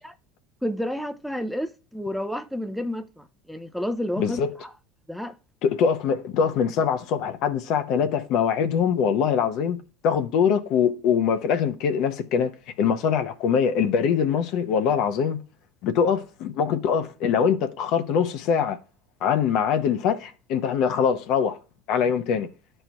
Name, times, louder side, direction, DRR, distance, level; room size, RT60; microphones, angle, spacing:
voice 1, 0.6-4.7 5.1-5.3, equal, ahead, 0.5 m, -30 dB
voice 2, 4.2-4.5 5.6-12.5 12.8-15.4 15.8-18.8 19.2-21.6 21.9-22.5, left 7 dB, 60° left, 0.8 m, -23 dB
12.0 x 4.4 x 2.2 m
hypercardioid pair, 80°, 0 cm